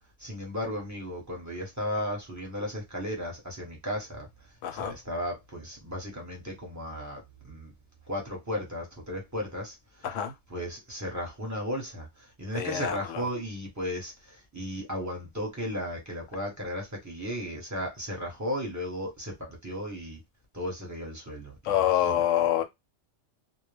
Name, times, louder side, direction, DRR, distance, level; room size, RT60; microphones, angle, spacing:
voice 1, 0.2-4.3 4.7-7.2 7.5-7.7 8.1-9.8 10.5-20.2 20.5-22.2, equal, 15° right, 0.8 m, -35 dB
voice 2, 4.6-4.9 10.0-10.3 12.5-13.2 21.6-22.6, left 11 dB, 80° left, 0.9 m, -26 dB
2.3 x 2.1 x 3.2 m
omnidirectional pair, 1.3 m